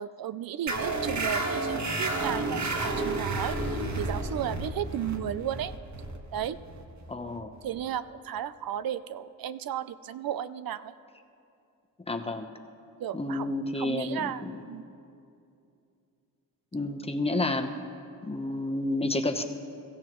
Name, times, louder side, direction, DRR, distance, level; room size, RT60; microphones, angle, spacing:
voice 1, 0.0-5.7 6.3-6.6 7.6-10.9 13.0-13.5 13.8-14.9, right 10 dB, 80° right, 14 dB, 0.5 m, -34 dB
sound 1, 0.7-7.8, right 2 dB, 55° right, 1.6 m, -31 dB
voice 2, 7.1-7.5 12.1-12.5 13.1-14.6 16.7-17.7 18.2-19.4, left 2 dB, 15° left, 5 dB, 0.9 m, -30 dB
23.0 x 14.5 x 3.1 m, 2.6 s
cardioid pair, 95°, 35 cm